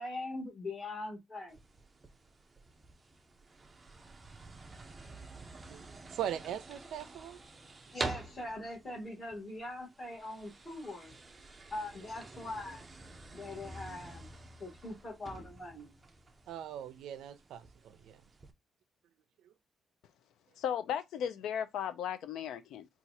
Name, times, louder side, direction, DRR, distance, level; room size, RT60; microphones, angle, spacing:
voice 1, 0.0-1.6 7.9-11.1 11.7-12.9 13.3-14.3 14.6-16.0, left 2 dB, 30° left, 1.7 m, -42 dB
sound 1, 1.5-18.5, right 2 dB, 15° right, 0.4 m, -48 dB
voice 2, 6.1-7.4 16.5-18.2 19.4-19.5, right 10 dB, 85° right, 0.4 m, -40 dB
voice 3, 20.6-22.9, left 9 dB, 85° left, 0.4 m, -36 dB
4.1 x 2.4 x 2.6 m
cardioid pair, 175°, 0 cm